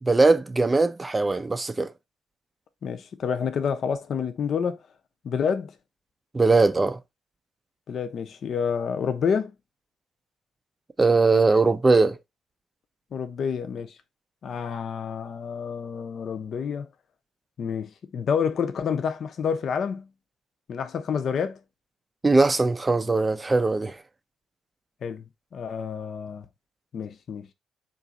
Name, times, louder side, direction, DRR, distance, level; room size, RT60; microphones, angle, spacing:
voice 1, 0.0-1.9 6.3-7.0 11.0-12.2 22.2-24.0, right 3 dB, 20° right, 0.5 m, -20 dB
voice 2, 2.8-4.8 5.2-5.7 7.9-9.5 13.1-14.0 14.4-16.9 17.6-20.1 20.7-21.6 25.0-25.2 25.5-26.4 26.9-27.5, left 6 dB, 60° left, 0.6 m, -28 dB
3.9 x 2.5 x 4.0 m
cardioid pair, 90°, 0 cm